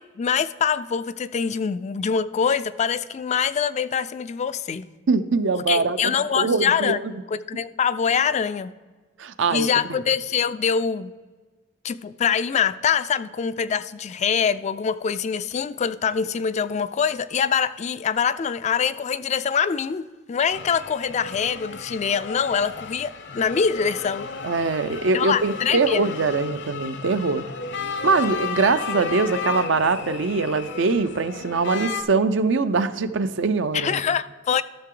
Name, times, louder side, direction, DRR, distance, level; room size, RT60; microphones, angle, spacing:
voice 1, 0.2-4.8 5.5-7.0 7.5-8.7 9.5-11.1 11.8-24.3 25.1-26.0 33.7-34.6, left 7 dB, 35° left, 13 dB, 0.3 m, -24 dB
voice 2, 5.1-7.0 9.2-10.0 24.4-27.4 28.0-34.0, right 4 dB, 70° right, 11 dB, 0.6 m, -23 dB
sound 1, 20.5-32.0, left 5 dB, 65° left, 0.8 m, -34 dB
13.0 x 6.6 x 3.8 m, 1.4 s
head